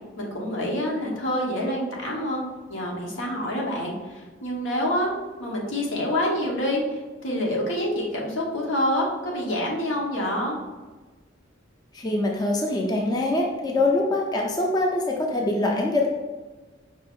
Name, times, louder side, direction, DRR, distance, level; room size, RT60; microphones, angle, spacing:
voice 1, 0.2-5.1 5.4-10.6, left 1 dB, 85° left, -2 dB, 1.0 m, -27 dB
voice 2, 11.9-16.1, left 2 dB, 20° left, 0 dB, 0.4 m, -24 dB
5.1 x 2.5 x 3.6 m, 1.3 s
head